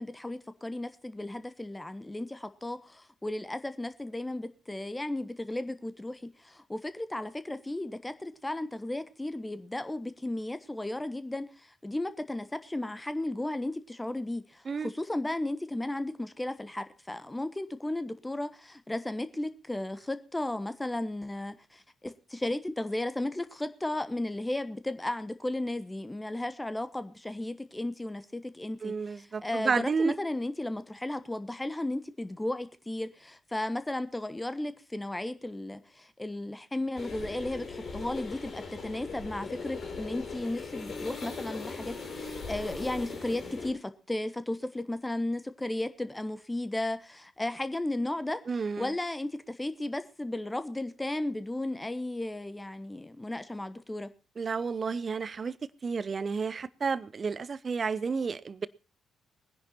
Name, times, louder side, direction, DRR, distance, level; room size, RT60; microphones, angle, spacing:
voice 1, 0.0-48.4 48.8-54.1, left 1 dB, 15° left, 1.2 m, -35 dB
voice 2, 28.8-30.1 48.5-48.9 54.4-55.5 55.8-58.7, right 5 dB, 40° right, 0.7 m, -31 dB
sound 1, 36.9-43.7, left 4 dB, 50° left, 4.8 m, -39 dB
20.5 x 10.5 x 4.3 m
figure-of-eight pair, 40°, 0 cm